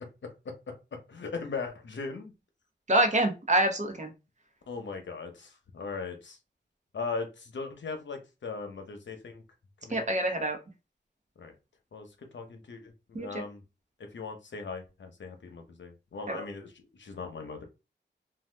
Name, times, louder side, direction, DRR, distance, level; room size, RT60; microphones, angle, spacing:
voice 1, 0.2-0.7 1.1-2.3 4.7-6.4 6.9-9.4 9.8-10.0 11.4-11.5 11.9-13.6 14.0-17.6, left 4 dB, 75° left, 5 dB, 0.8 m, -39 dB
voice 2, 2.9-4.1 9.9-10.6 13.1-13.4 16.3-16.4, right 1 dB, 40° right, 5 dB, 0.8 m, -26 dB
2.7 x 2.2 x 3.3 m, 0.28 s
wide cardioid pair, 105°, 19 cm